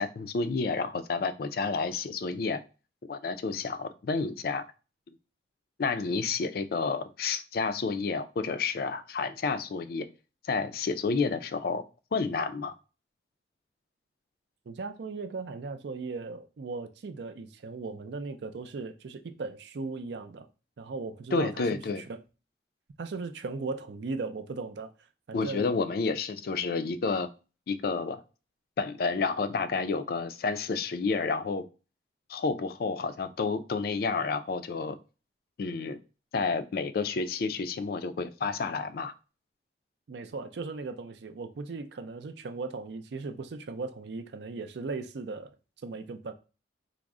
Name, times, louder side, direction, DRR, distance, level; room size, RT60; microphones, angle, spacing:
voice 1, 0.0-2.6 3.1-4.6 5.8-10.1 10.4-11.8 12.1-12.7 21.3-22.0 25.3-27.3 27.7-28.2 28.8-31.6 32.3-35.0 35.6-36.0 36.3-39.1, left 4 dB, 50° left, 0.3 m, -30 dB
voice 2, 14.7-20.5 20.8-22.0 23.0-24.9 25.3-25.7 40.1-45.5 45.8-46.3, right 4 dB, 65° right, 0.4 m, -37 dB
3.5 x 2.0 x 3.5 m
head